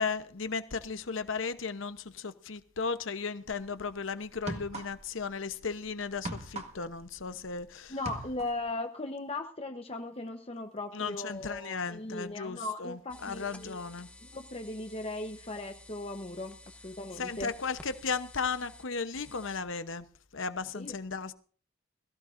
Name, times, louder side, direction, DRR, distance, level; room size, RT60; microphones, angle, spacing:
voice 1, 0.0-7.9 10.9-14.1 17.2-20.0 20.3-21.3, left 5 dB, 70° left, 0.9 m, -35 dB
sound 1, 3.5-3.7 4.3-5.2 5.5-7.6 7.9-8.7, right 2 dB, 35° right, 1.6 m, -40 dB
voice 2, 7.9-13.8 14.3-17.5 20.7-21.0, left 2 dB, 30° left, 0.9 m, -38 dB
sound 2, 13.1-19.6, left 1 dB, 5° left, 1.1 m, -53 dB
22.0 x 15.0 x 2.6 m
head